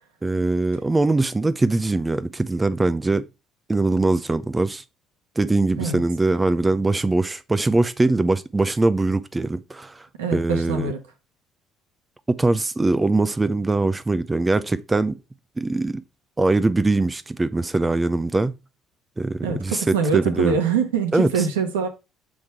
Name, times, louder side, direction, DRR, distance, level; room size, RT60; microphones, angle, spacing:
voice 1, 0.2-3.2 3.7-4.8 5.4-10.1 10.3-10.9 12.3-15.2 15.6-16.0 16.4-18.5 19.2-20.6 21.1-21.5, right 2 dB, 20° right, 0.5 m, -22 dB
voice 2, 10.2-11.0 19.4-21.9, right 6 dB, 85° right, 1.1 m, -24 dB
6.3 x 3.6 x 4.4 m
hypercardioid pair, 60°, 0 cm